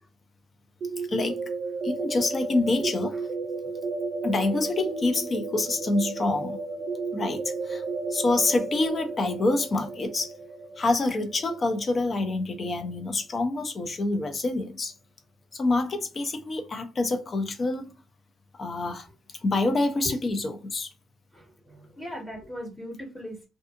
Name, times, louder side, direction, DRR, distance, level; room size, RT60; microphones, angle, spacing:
sound 1, 0.8-12.5, right 3 dB, 55° right, 0.5 m, -33 dB
voice 1, 1.1-1.5 1.8-3.1 4.2-6.6 7.1-7.8 8.1-10.3 10.8-14.9 15.5-17.9 18.6-19.1 19.4-20.9, left 2 dB, 40° left, 0.6 m, -27 dB
voice 2, 21.3-23.5, equal, 15° left, 1.3 m, -38 dB
2.6 x 2.4 x 2.4 m
cardioid pair, 90°, 0 cm